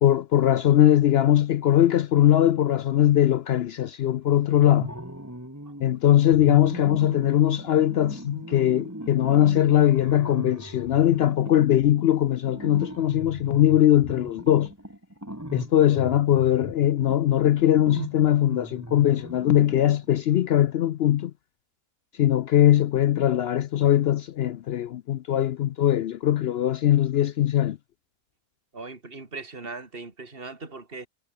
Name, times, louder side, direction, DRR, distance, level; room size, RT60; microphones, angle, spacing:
voice 1, 0.0-4.9 5.8-14.7 15.5-21.3 22.2-27.8, left 12 dB, 75° left, 0.5 m, -21 dB
sound 1, 4.5-5.9 6.3-20.2, right 1 dB, 10° right, 4.1 m, -39 dB
voice 2, 28.7-31.1, right 3 dB, 35° right, 3.5 m, -39 dB
omnidirectional pair, 1.6 m